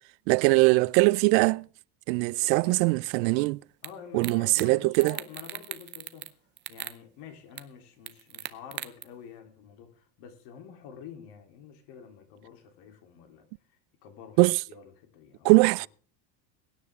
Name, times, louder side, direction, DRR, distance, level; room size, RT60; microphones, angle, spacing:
voice 1, 0.3-1.6 2.1-3.6 4.1-5.2 14.4-14.6 15.4-15.9, right 25 dB, 80° right, 0.6 m, -21 dB
voice 2, 2.4-2.9 3.8-6.3 6.7-13.5 14.0-14.4 14.7-15.9, left 7 dB, 55° left, 3.4 m, -48 dB
sound 1, 3.8-3.9 4.2-4.7 4.9-6.3 6.6-7.0 7.6-7.7 8.1-9.0, right 12 dB, 25° right, 0.6 m, -38 dB
22.5 x 10.0 x 3.6 m
cardioid pair, 170°, 50 cm